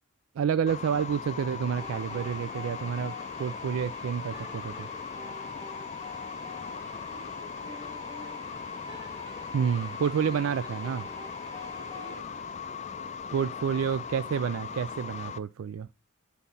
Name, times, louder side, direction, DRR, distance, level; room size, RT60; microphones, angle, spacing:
voice 1, 0.4-4.9 9.5-11.0 13.3-15.9, right 7 dB, 80° right, 0.3 m, -29 dB
sound 1, 0.7-15.4, left 6 dB, 35° left, 0.4 m, -39 dB
sound 2, 1.8-12.2, left 1 dB, 20° right, 1.7 m, -47 dB
voice 2, 6.7-9.2 10.0-10.8 11.6-13.9, right 1 dB, 45° right, 2.5 m, -53 dB
9.9 x 4.1 x 4.0 m
head